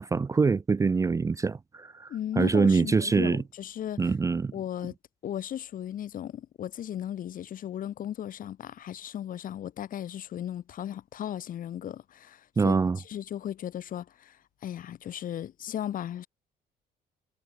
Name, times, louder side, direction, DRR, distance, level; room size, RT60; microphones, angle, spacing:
voice 1, 0.0-2.1 2.4-3.4 4.0-4.5 12.6-13.0, right 4 dB, 20° right, 0.5 m, -24 dB
voice 2, 2.1-4.1 4.5-4.9 5.2-12.8 13.0-14.4 14.6-16.3, left 10 dB, 55° left, 1.7 m, -36 dB
cardioid pair, 110°, 17 cm